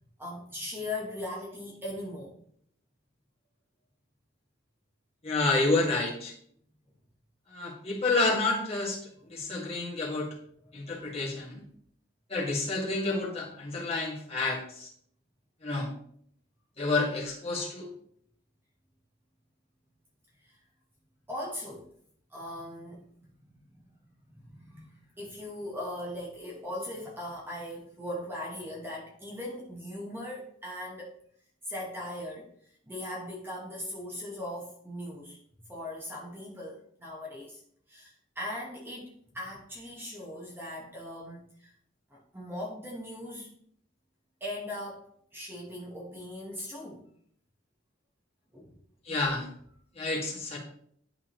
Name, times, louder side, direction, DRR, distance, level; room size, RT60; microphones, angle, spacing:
voice 1, 0.2-2.4 9.3-9.4 10.6-10.9 20.4-20.6 21.3-21.9 22.3-23.8 24.3-31.1 31.7-32.5 32.9-35.4 35.7-37.6 37.9-41.7 42.1-43.5 44.4-47.0 48.5-48.7, left 1 dB, 10° right, -4 dB, 1.1 m, -39 dB
voice 2, 5.2-6.3 7.5-9.0 9.3-10.3 10.7-11.6 12.3-14.9 15.6-15.9 16.8-17.9 49.1-49.5 50.0-50.6, left 3 dB, 30° left, -4 dB, 1.7 m, -29 dB
11.0 x 3.6 x 3.0 m, 0.65 s
head